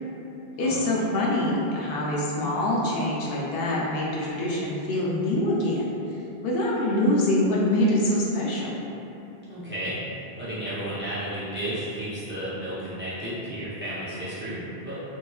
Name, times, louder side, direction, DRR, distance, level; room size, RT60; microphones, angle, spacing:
voice 1, 0.6-5.9 6.4-8.7, left 1 dB, 70° left, -5 dB, 0.8 m, -25 dB
voice 2, 9.5-10.0 10.4-14.9, right 1 dB, 15° right, -11 dB, 0.4 m, -33 dB
3.0 x 2.7 x 2.2 m, 2.9 s
omnidirectional pair, 1.0 m